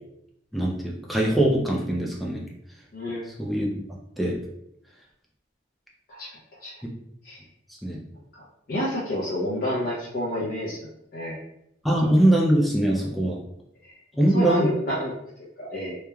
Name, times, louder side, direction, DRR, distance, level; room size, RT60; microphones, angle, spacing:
voice 1, 0.5-2.4 3.4-3.8 4.2-4.4 6.8-6.9 7.8-8.0 11.8-13.4 14.2-14.7, right 1 dB, ahead, -3 dB, 0.3 m, -22 dB
voice 2, 2.9-3.3 6.1-6.3 6.6-6.8 7.2-7.4 8.3-11.4 12.0-12.1 13.8-14.0 14.3-15.2 15.6-16.0, left 1 dB, 50° left, -7 dB, 0.6 m, -29 dB
3.0 x 2.1 x 2.3 m, 0.80 s
head